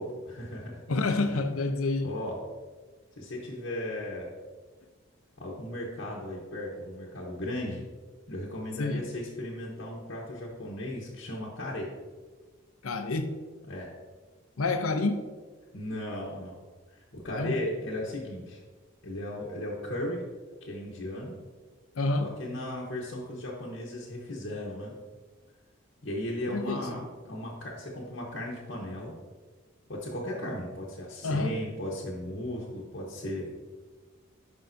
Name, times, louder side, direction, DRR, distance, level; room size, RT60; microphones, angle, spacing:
voice 1, 0.0-0.8 2.0-2.4 3.2-4.3 5.4-7.8 8.3-11.9 13.7-13.9 15.7-16.6 17.1-18.6 19.0-20.2 20.6-21.4 22.2-24.9 26.0-29.2 29.9-33.7, left 1 dB, 55° left, -5 dB, 1.1 m, -36 dB
voice 2, 0.9-2.1 8.8-9.0 12.8-13.3 14.6-15.2 17.3-17.6 22.0-22.3 26.5-26.9 31.2-31.6, left 3 dB, 85° left, 8 dB, 0.7 m, -28 dB
10.0 x 5.5 x 2.7 m, 1.4 s
head